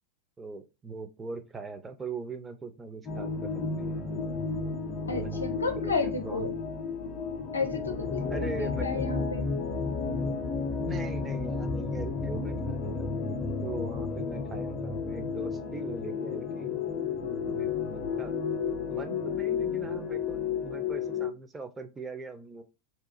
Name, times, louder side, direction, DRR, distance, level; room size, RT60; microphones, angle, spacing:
voice 1, 0.4-4.2 5.1-6.5 8.3-9.1 10.8-13.1 13.6-16.7 17.1-18.3 18.6-22.6, right 4 dB, 15° right, 0.5 m, -41 dB
sound 1, 3.1-21.3, left 5 dB, 35° left, 0.5 m, -32 dB
voice 2, 5.1-6.5 7.5-9.5, left 4 dB, 85° left, 0.5 m, -32 dB
2.8 x 2.4 x 2.4 m
figure-of-eight pair, 90°, 0 cm